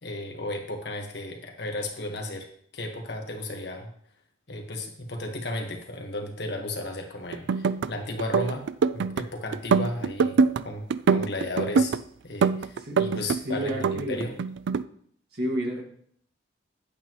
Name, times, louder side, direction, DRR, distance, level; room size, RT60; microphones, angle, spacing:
voice 1, 0.0-2.5 2.7-3.9 4.5-8.7 8.9-11.9 12.2-13.8 14.1-14.3, left 1 dB, 60° left, 3 dB, 1.4 m, -34 dB
sound 1, 7.3-7.9 8.2-9.2 9.5-10.6 10.9-12.0 12.4-13.4 13.7-14.8, right 5 dB, 70° right, 0.3 m, -23 dB
voice 2, 12.8-14.3 15.3-15.8, equal, 55° right, 0 dB, 1.9 m, -31 dB
9.1 x 8.4 x 3.0 m, 0.62 s
head